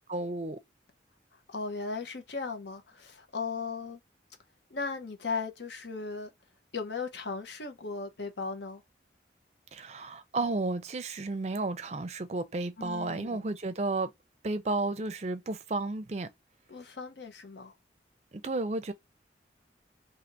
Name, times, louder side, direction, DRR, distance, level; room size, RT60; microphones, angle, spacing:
voice 1, 0.1-0.6 9.7-14.1 14.4-16.3 18.3-18.9, right 2 dB, 35° right, 0.5 m, -32 dB
voice 2, 1.5-4.0 4.7-6.3 6.7-8.8 12.8-13.4 16.7-17.7, left 4 dB, 75° left, 0.9 m, -37 dB
2.8 x 2.6 x 4.3 m
head